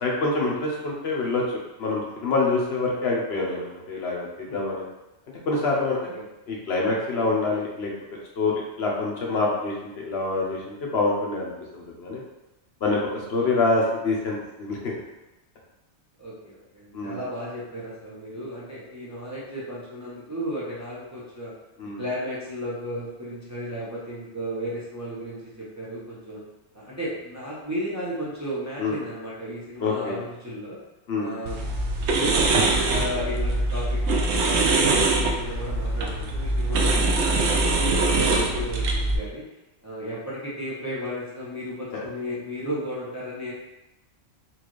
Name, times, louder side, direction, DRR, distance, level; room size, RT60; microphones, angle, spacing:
voice 1, 0.0-1.4 1.8-4.8 5.5-6.0 6.5-7.9 8.4-8.5 8.8-12.2 12.8-13.0 13.3-14.9 16.9-17.2 21.8-22.0 28.8-28.9 29.8-30.2 31.1-31.3 37.5-37.7 41.9-42.0, left 3 dB, 65° left, -2 dB, 1.0 m, -26 dB
voice 2, 5.9-6.3 16.2-21.5 22.0-26.4 26.7-30.8 31.2-31.7 32.0-39.5 39.8-43.5, equal, 15° right, -8 dB, 0.7 m, -34 dB
sound 1, 31.4-39.2, right 2 dB, 75° right, 0.8 m, -23 dB
4.2 x 2.4 x 3.1 m, 0.96 s
omnidirectional pair, 1.2 m